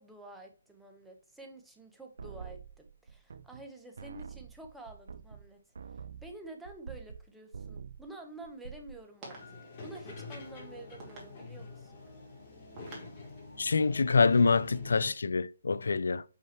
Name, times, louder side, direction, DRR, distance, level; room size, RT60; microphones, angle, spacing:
voice 1, 0.0-5.6 6.2-12.0, right 2 dB, 5° right, 1.1 m, -49 dB
sound 1, 2.2-3.7 4.0-7.3 7.5-8.1 8.4-9.0, right 6 dB, 70° right, 0.5 m, -46 dB
sound 2, 8.3-14.7, right 3 dB, 20° right, 2.4 m, -54 dB
sound 3, 9.2-15.1, left 3 dB, 35° left, 3.2 m, -47 dB
voice 2, 13.6-16.2, left 4 dB, 75° left, 0.4 m, -26 dB
5.6 x 5.6 x 3.1 m
hypercardioid pair, 150°, 0 cm